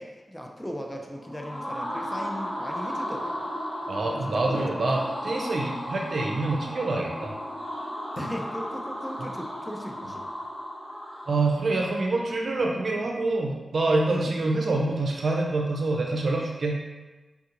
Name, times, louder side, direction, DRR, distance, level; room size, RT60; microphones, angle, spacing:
voice 1, 0.0-3.5 4.0-5.0 8.2-10.3 14.1-14.3, equal, 10° left, 1 dB, 0.5 m, -37 dB
sound 1, 0.9-2.5 4.5-5.9 8.2-9.2, left 1 dB, 80° left, 0.9 m, -43 dB
sound 2, 1.1-12.0, equal, 65° left, 1.4 m, -35 dB
voice 2, 3.9-7.3 11.3-16.8, right 2 dB, 70° right, 0 dB, 0.5 m, -26 dB
3.5 x 2.4 x 2.9 m, 1.2 s
cardioid pair, 45°, 0 cm